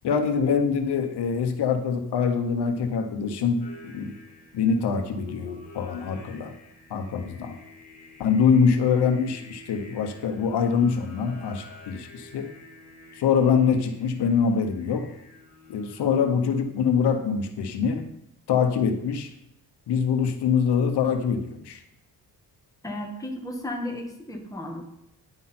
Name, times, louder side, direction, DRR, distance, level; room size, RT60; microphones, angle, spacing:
voice 1, 0.0-4.1 4.5-6.5 6.9-7.5 8.2-12.5 13.2-15.1 15.7-18.1 18.5-19.3 19.9-21.8, left 6 dB, 80° left, 6 dB, 1.1 m, -24 dB
Singing, 3.6-16.1, left 2 dB, 40° left, 3.0 m, -49 dB
voice 2, 22.8-24.8, left 1 dB, 10° left, 0 dB, 1.6 m, -34 dB
9.8 x 8.1 x 4.4 m, 0.78 s
cardioid pair, 125°, 40 cm